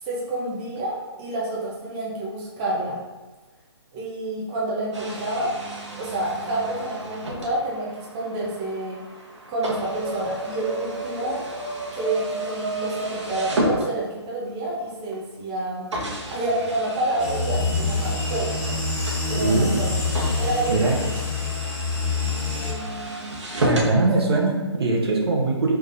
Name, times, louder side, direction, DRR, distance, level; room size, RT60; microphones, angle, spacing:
voice 1, 0.0-3.0 3.9-5.6 6.0-9.0 9.5-11.4 11.9-15.9 16.3-18.6 19.3-20.0 20.4-21.1 22.6-23.3 23.8-24.1, right 1 dB, 20° right, -6 dB, 0.9 m, -28 dB
sound 1, 4.9-14.4 15.1-15.2 15.9-23.9, right 1 dB, 90° right, 1.3 m, -32 dB
sound 2, 17.2-22.7, left 3 dB, 5° left, 0.8 m, -26 dB
voice 2, 19.4-19.7 20.7-21.0 23.6-25.7, right 3 dB, 60° right, -1 dB, 1.0 m, -21 dB
4.8 x 3.6 x 2.7 m, 1.2 s
hypercardioid pair, 155°, 15 cm